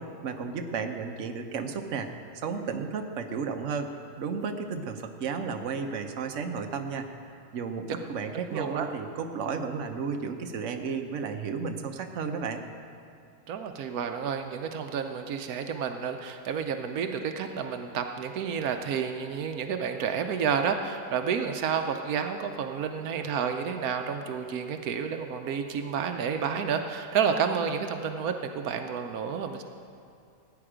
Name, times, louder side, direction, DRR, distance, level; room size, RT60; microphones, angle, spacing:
voice 1, 0.0-3.9 4.2-7.1 7.5-12.6, right 5 dB, 60° right, 5 dB, 1.1 m, -33 dB
voice 2, 8.5-8.9 13.5-29.6, right 7 dB, 80° right, 6 dB, 1.2 m, -30 dB
16.5 x 9.4 x 5.0 m, 2.5 s
omnidirectional pair, 1.5 m